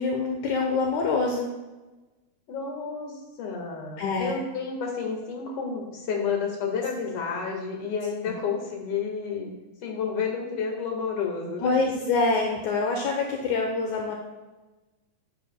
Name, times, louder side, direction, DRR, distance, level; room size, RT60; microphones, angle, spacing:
voice 1, 0.0-1.5 4.0-4.4 11.6-14.2, left 3 dB, 75° left, 1 dB, 2.2 m, -25 dB
voice 2, 2.5-9.5 9.8-11.7, left 5 dB, 55° left, 1 dB, 2.4 m, -30 dB
10.5 x 9.9 x 2.2 m, 1.2 s
omnidirectional pair, 3.5 m